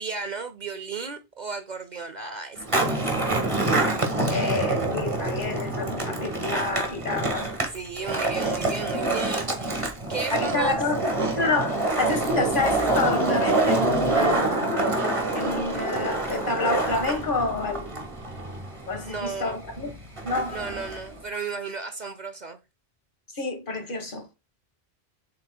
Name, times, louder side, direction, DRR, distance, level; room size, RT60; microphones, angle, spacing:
voice 1, 0.0-3.0 7.7-10.8 19.0-19.6 20.5-22.6, right 4 dB, 50° right, 0.7 m, -34 dB
Skateboard, 2.6-21.2, right 2 dB, 30° right, 1.4 m, -26 dB
voice 2, 4.3-7.5 10.3-14.6 15.3-17.9 18.9-20.0 20.2-20.6 23.3-24.3, left 3 dB, 55° left, 1.7 m, -28 dB
7.6 x 5.5 x 2.3 m
omnidirectional pair, 1.1 m